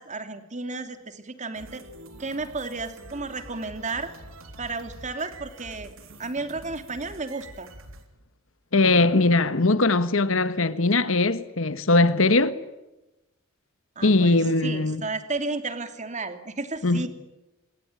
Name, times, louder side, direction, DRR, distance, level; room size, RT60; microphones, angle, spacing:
voice 1, 0.0-1.8 2.2-4.1 4.6-5.9 6.2-7.7 14.0-17.1, right 3 dB, 35° right, 2.7 m, -33 dB
sound 1, 1.5-8.0, right 1 dB, 80° right, 3.9 m, -46 dB
voice 2, 8.7-12.6 14.0-15.0 16.8-17.0, left 2 dB, 70° left, 1.5 m, -20 dB
27.5 x 22.5 x 9.1 m
head